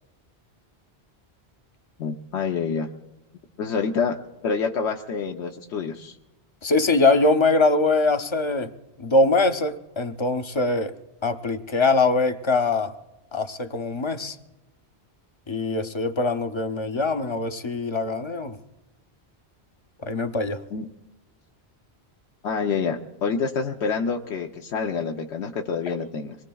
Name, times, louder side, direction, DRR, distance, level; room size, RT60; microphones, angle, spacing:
voice 1, 2.0-2.9 3.6-4.2 4.4-6.2 20.7-20.9 22.4-26.4, left 5 dB, 85° left, 2 dB, 1.0 m, -27 dB
voice 2, 6.6-8.7 9.0-10.9 11.2-12.9 13.3-14.4 15.5-18.6 20.0-20.6, left 3 dB, 35° left, 8 dB, 0.5 m, -22 dB
25.0 x 21.0 x 2.3 m, 1.0 s
omnidirectional pair, 1.1 m